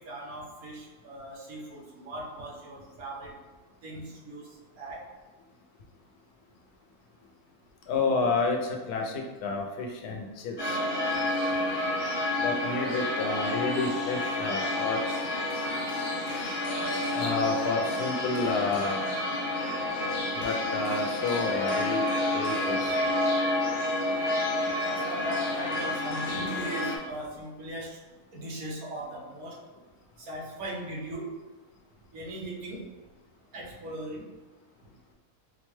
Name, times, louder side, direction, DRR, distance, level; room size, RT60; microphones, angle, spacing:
voice 1, 0.0-3.4 3.8-5.0 24.7-28.0 28.3-29.6 30.2-31.3 32.1-32.8 33.5-34.3, right 1 dB, 75° right, -3 dB, 1.3 m, -38 dB
voice 2, 7.9-10.8 12.4-15.2 17.1-19.0 20.3-22.0 22.3-23.0, left 3 dB, 90° left, 2 dB, 1.1 m, -30 dB
sound 1, 10.6-27.0, left 1 dB, 55° left, 0.8 m, -29 dB
4.3 x 2.2 x 3.0 m, 1.2 s
omnidirectional pair, 1.6 m